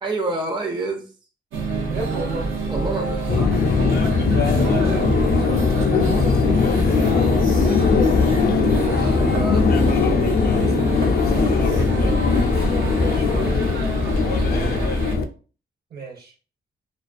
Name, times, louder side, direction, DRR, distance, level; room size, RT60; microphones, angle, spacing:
voice 1, 0.0-1.1 2.7-3.6 7.4-7.9 8.6-9.8 10.3-10.5 14.4-14.8, right 2 dB, 25° right, 0.4 m, -29 dB
sound 1, 1.5-15.2, right 2 dB, 90° right, 0.6 m, -26 dB
voice 2, 1.9-2.6 4.3-7.7 8.6-9.2 10.5-12.3 12.6-13.6 15.9-16.3, right 4 dB, 55° right, 0.7 m, -34 dB
Subway metro underground, 3.3-15.2, left 5 dB, 50° left, 0.4 m, -20 dB
2.3 x 2.2 x 2.4 m
cardioid pair, 75°, 20 cm